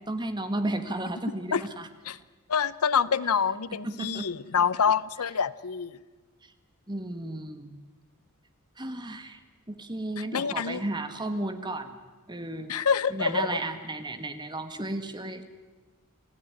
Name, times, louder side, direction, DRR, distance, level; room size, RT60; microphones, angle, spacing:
voice 1, 0.1-1.9 3.7-4.3 6.9-7.8 8.8-9.4 9.7-11.9 12.3-12.8 13.1-15.4, right 2 dB, 20° right, 8 dB, 1.6 m, -33 dB
voice 2, 2.5-5.9 10.2-10.8 12.7-13.5, left 6 dB, 80° left, 18 dB, 0.7 m, -26 dB
27.0 x 15.0 x 9.8 m, 1.3 s
head